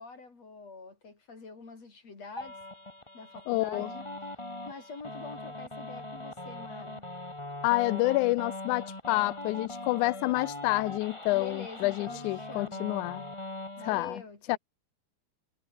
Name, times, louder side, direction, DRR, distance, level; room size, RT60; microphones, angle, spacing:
voice 1, 0.0-2.6 3.1-4.1 4.6-7.1 11.3-12.9 13.8-14.6, left 4 dB, 60° left, 6.4 m, -45 dB
sound 1, 2.4-14.0, left 1 dB, 10° left, 2.7 m, -41 dB
voice 2, 3.5-3.9 7.6-13.2 13.9-14.2 14.5-14.6, left 21 dB, 85° left, 2.0 m, -28 dB
omnidirectional pair, 3.4 m